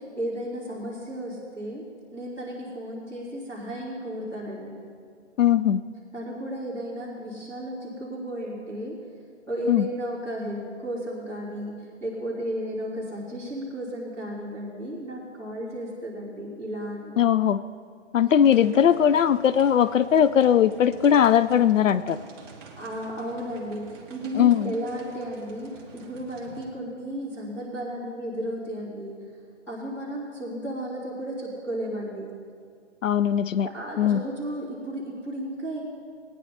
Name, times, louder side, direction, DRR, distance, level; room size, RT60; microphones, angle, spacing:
voice 1, 0.0-4.8 6.1-9.0 9.5-17.2 22.7-29.2 29.7-32.3 33.7-35.8, equal, 5° left, -11 dB, 3.3 m, -34 dB
voice 2, 5.4-5.8 9.7-9.9 17.2-17.6 18.1-22.2 24.3-24.7 33.0-33.7 34.0-34.2, left 9 dB, 90° left, 15 dB, 0.6 m, -20 dB
sound 1, 18.3-26.7, right 4 dB, 20° right, 1.4 m, -48 dB
19.0 x 10.0 x 4.3 m, 2.1 s
hypercardioid pair, 165°, 37 cm